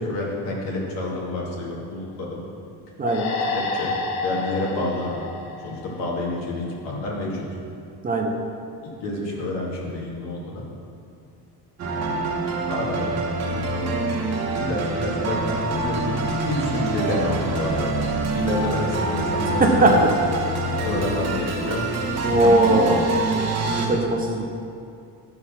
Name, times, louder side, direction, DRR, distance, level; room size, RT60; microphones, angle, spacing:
voice 1, 0.0-2.4 3.5-4.0 4.2-5.3 5.6-7.4 8.8-10.6 12.7-13.2 14.6-17.9 18.2-20.0 20.8-23.1, left 2 dB, 80° left, -3 dB, 2.2 m, -28 dB
sound 1, 3.0-6.5, left 3 dB, 45° left, 0.7 m, -30 dB
voice 2, 3.0-3.3 8.0-8.3 19.6-20.1 22.2-23.0 23.6-24.5, right 2 dB, 20° right, 1 dB, 0.6 m, -19 dB
sound 2, 11.8-23.9, right 3 dB, 35° right, 1.1 m, -26 dB
11.0 x 4.8 x 5.7 m, 2.5 s
cardioid pair, 160°, 42 cm